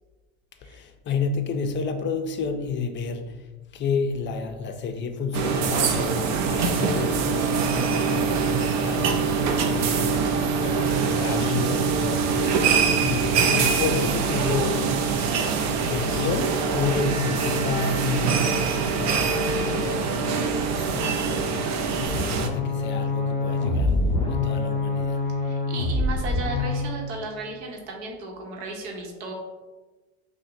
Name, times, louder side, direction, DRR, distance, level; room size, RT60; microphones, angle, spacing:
voice 1, 0.6-3.5 3.7-12.5 13.0-14.9 15.7-24.0 24.3-25.2, left 5 dB, 35° left, 0.4 m, -31 dB
sound 1, 5.3-22.5, right 5 dB, 55° right, 0.6 m, -24 dB
sound 2, 9.3-15.2 17.7-17.8, equal, 20° right, 1.5 m, -45 dB
sound 3, 22.1-26.9, left 3 dB, 20° left, 1.2 m, -25 dB
voice 2, 25.4-29.3, right 3 dB, 85° right, 0.9 m, -35 dB
5.5 x 2.2 x 2.6 m
supercardioid pair, 100°, 33 cm